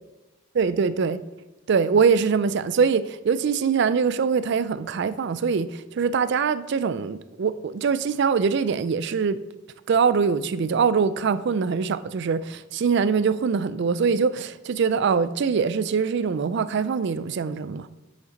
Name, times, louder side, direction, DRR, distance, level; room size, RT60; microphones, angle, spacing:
voice 1, 0.5-1.2 1.7-9.4 9.9-17.9, right 5 dB, 55° right, 0.4 m, -23 dB
8.1 x 7.2 x 4.0 m
head